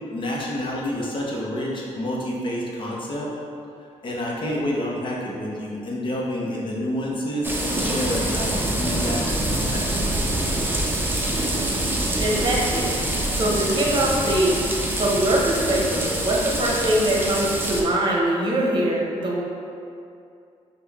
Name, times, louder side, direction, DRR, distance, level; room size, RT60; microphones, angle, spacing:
voice 1, 0.1-3.3 4.0-10.2, left 1 dB, 40° left, -3 dB, 0.8 m, -28 dB
sound 1, 7.4-17.8, right 1 dB, 15° right, 0.5 m, -25 dB
voice 2, 12.2-12.9 13.4-14.6 15.0-19.4, right 1 dB, 40° right, -3 dB, 0.8 m, -22 dB
5.0 x 2.2 x 3.5 m, 2.5 s
cardioid pair, 100°, 13 cm